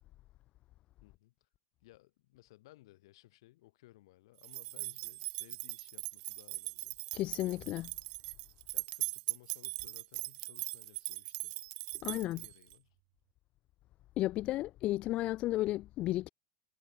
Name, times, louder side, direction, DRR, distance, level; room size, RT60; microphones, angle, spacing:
voice 1, 1.0-1.5 1.8-7.0 8.7-11.5 11.9-13.0, left 18 dB, 70° left, 6.1 m, -61 dB
sound 1, 4.4-12.7, right 40 dB or more, 60° right, 0.7 m, -40 dB
voice 2, 7.1-7.9 12.0-12.4 14.2-16.3, left 16 dB, 45° left, 0.3 m, -33 dB
hypercardioid pair, 90°, 3 cm